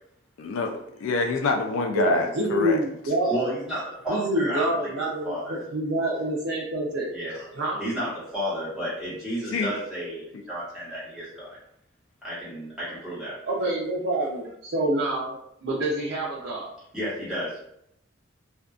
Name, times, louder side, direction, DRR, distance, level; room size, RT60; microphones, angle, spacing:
voice 1, 0.4-2.8 9.5-9.7, left 3 dB, 85° left, 3 dB, 0.3 m, -26 dB
voice 2, 1.9-3.5 4.1-7.1 7.5-7.8 13.5-16.7, right 1 dB, 65° right, -4 dB, 0.5 m, -27 dB
voice 3, 3.3-4.9 5.2-5.6 7.1-7.5 7.8-11.6 12.2-13.5 16.9-17.6, equal, 5° right, -11 dB, 1.2 m, -32 dB
2.5 x 2.2 x 2.3 m, 0.74 s
head